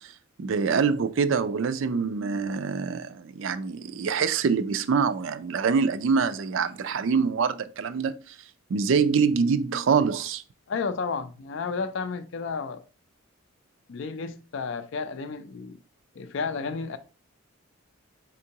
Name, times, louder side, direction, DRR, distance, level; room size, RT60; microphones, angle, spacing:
voice 1, 0.4-8.4 8.7-10.4, right 5 dB, 65° right, 0.4 m, -25 dB
voice 2, 10.7-12.8 13.9-15.8 16.2-17.0, left 5 dB, 60° left, 0.4 m, -32 dB
4.4 x 3.6 x 2.8 m
head